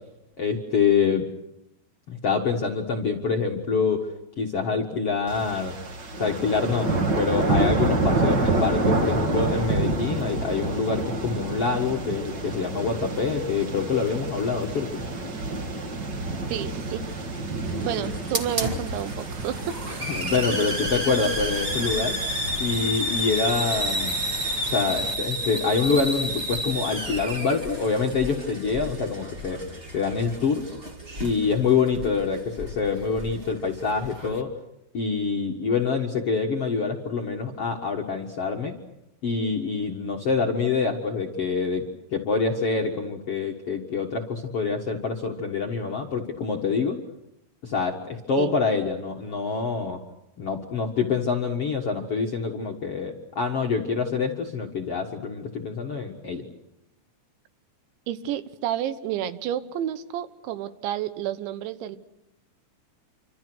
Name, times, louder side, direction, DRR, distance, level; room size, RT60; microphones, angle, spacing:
voice 1, 0.4-1.2 2.1-5.7 6.2-15.0 18.0-18.1 20.1-22.2 22.6-24.2 24.6-29.6 29.9-30.6 31.2-34.5 34.9-38.7 39.2-41.8 42.1-47.0 47.6-50.0 50.4-56.4, left 5 dB, 55° left, 1 dB, 1.6 m, -26 dB
sound 1, 5.3-25.1, right 2 dB, 60° right, 1.1 m, -29 dB
Hiss, 16.5-34.4, equal, 30° right, 1.0 m, -32 dB
voice 2, 16.5-17.0 17.7-20.1 48.4-48.6 58.1-62.0, right 11 dB, 85° right, 12 dB, 3.5 m, -30 dB
28.0 x 26.0 x 6.3 m, 0.87 s
omnidirectional pair, 5.2 m